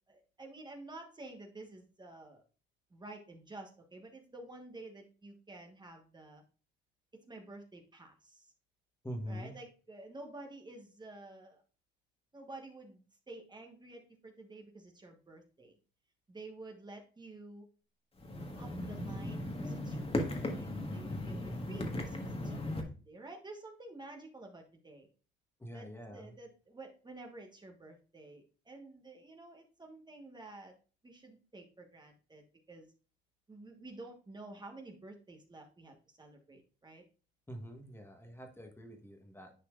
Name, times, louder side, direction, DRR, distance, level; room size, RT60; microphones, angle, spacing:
voice 1, 0.1-2.4 2.9-6.4 7.1-8.5 9.3-11.6 12.3-15.8 16.3-17.7 18.6-25.1 25.7-30.7 31.0-32.9 33.5-37.0, right 2 dB, 20° right, 2 dB, 1.3 m, -51 dB
voice 2, 9.0-9.5 25.6-26.3 37.5-39.5, equal, 10° left, 3 dB, 1.3 m, -45 dB
sound 1, 18.2-22.8, left 1 dB, 30° left, 1.5 m, -37 dB
10.0 x 4.4 x 2.4 m, 0.36 s
cardioid pair, 90°, 20 cm